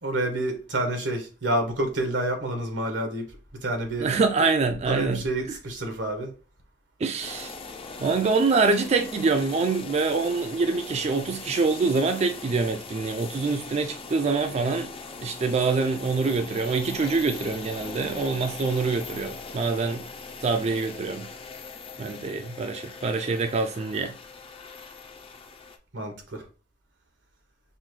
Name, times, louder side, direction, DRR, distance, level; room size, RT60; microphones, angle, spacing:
voice 1, 0.0-3.3 3.6-4.1 4.9-6.3 25.9-26.4, right 1 dB, 90° right, 1.1 m, -28 dB
voice 2, 4.0-5.2 7.0-7.5 8.0-14.9 15.2-20.0 20.4-21.3 22.0-24.1, right 4 dB, 35° right, 0.3 m, -25 dB
sound 1, 7.2-25.8, left 4 dB, 30° left, 0.5 m, -40 dB
5.4 x 2.2 x 3.1 m
head